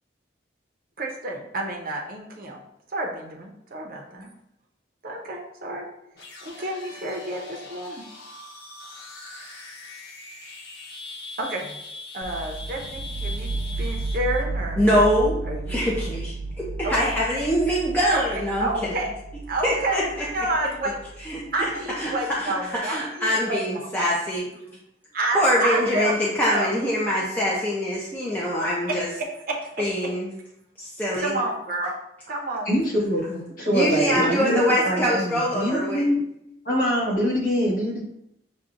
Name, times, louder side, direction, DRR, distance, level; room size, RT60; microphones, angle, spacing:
voice 1, 1.0-2.6 2.9-4.0 5.0-5.9 6.4-8.0 11.4-11.8 12.1-14.8 15.5-15.8 16.8-17.0 18.1-18.2 18.6-19.1 19.5-21.0 21.5-23.6 24.6-24.7 25.1-26.7 29.5-29.7 31.1-31.9 32.3-32.7, right 2 dB, 50° right, 0 dB, 0.7 m, -29 dB
sound 1, 6.1-14.4, left 2 dB, 85° left, 0.9 m, -41 dB
sound 2, 12.2-22.0, right 3 dB, 85° right, 0.4 m, -33 dB
voice 2, 14.8-15.4 15.7-18.7 19.6-20.0 21.2-21.5 22.0-22.1 22.4-22.5 22.8-24.5 25.3-29.1 29.8-30.3 30.8-31.4 33.3-33.4 33.7-36.0, equal, 10° left, -6 dB, 0.5 m, -24 dB
voice 3, 32.6-33.2 33.6-36.2 36.6-38.0, equal, 50° left, -5 dB, 1.5 m, -24 dB
6.9 x 2.3 x 2.5 m, 0.81 s
head